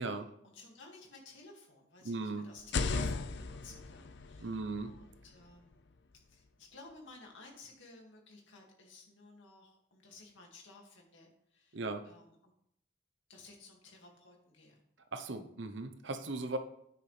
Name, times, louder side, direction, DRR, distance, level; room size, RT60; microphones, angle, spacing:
voice 1, 0.4-4.5 4.8-5.9 6.3-12.5 13.3-14.8, left 3 dB, 75° left, 0 dB, 2.2 m, -55 dB
voice 2, 2.0-2.5 4.4-4.9 11.7-12.0 15.1-16.6, right 3 dB, 70° right, 8 dB, 0.9 m, -38 dB
sound 1, 2.6-6.4, left 4 dB, 60° left, 0.5 m, -38 dB
9.7 x 9.4 x 3.4 m, 0.74 s
head